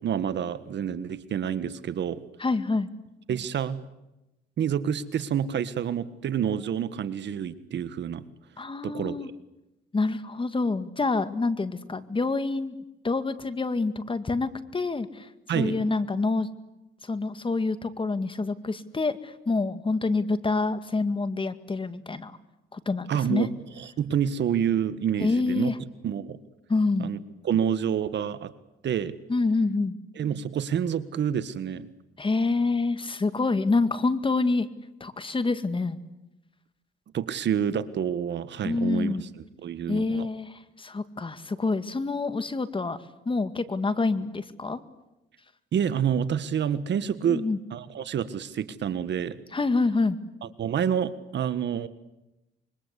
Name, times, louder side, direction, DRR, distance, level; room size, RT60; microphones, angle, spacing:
voice 1, 0.0-2.2 3.3-3.8 4.6-8.2 8.8-9.3 15.5-15.8 23.1-23.5 23.8-25.7 26.0-26.4 27.0-27.2 27.4-28.5 28.8-29.1 30.2-31.9 37.1-39.3 39.6-40.3 45.7-47.4 47.7-49.4 50.4-51.9, right 8 dB, 65° right, 14 dB, 1.6 m, -28 dB
voice 2, 2.4-2.9 8.6-9.3 9.9-12.8 13.0-15.3 15.6-16.5 17.0-22.4 22.7-23.5 25.2-25.7 26.7-27.1 29.3-30.0 32.2-34.7 35.0-36.0 38.6-39.2 39.9-43.0 43.3-44.8 47.3-47.6 49.5-50.2, left 3 dB, 25° left, 12 dB, 2.1 m, -27 dB
26.0 x 24.0 x 8.4 m, 0.95 s
cardioid pair, 90°, 20 cm